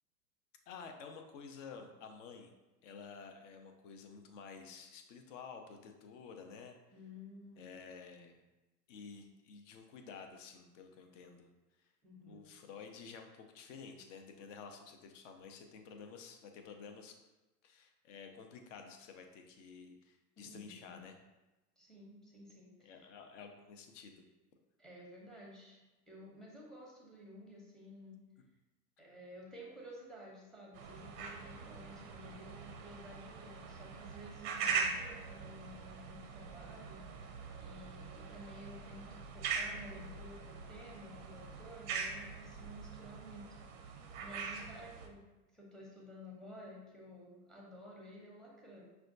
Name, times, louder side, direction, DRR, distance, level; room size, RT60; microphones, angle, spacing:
voice 1, 0.7-2.5 2.8-6.7 7.6-8.4 8.9-11.5 12.3-17.2 17.6-21.2 22.8-24.2, left 5 dB, 50° left, 5 dB, 0.6 m, -51 dB
voice 2, 6.9-7.7 12.0-12.5 20.4-21.0 21.8-23.0 24.8-28.2 29.0-37.3 37.6-43.6 44.2-45.2 45.5-48.9, equal, ahead, -3 dB, 0.7 m, -53 dB
sound 1, 30.7-45.1, right 5 dB, 40° right, 0.5 m, -42 dB
5.7 x 2.3 x 2.5 m, 1.1 s
hypercardioid pair, 95°, 48 cm